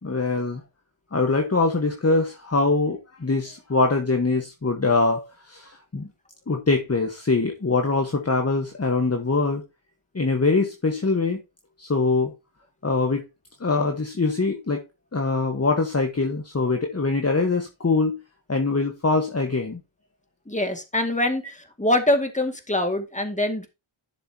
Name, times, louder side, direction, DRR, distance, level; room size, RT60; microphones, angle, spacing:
voice 1, 0.0-0.6 1.1-6.1 6.5-9.6 10.1-11.4 11.8-12.3 12.8-13.2 13.6-14.8 15.1-18.2 18.5-19.8, left 3 dB, 30° left, 1.4 m, -23 dB
voice 2, 20.5-23.7, left 1 dB, 15° left, 2.2 m, -24 dB
11.5 x 7.0 x 2.9 m
wide cardioid pair, 85°, 49 cm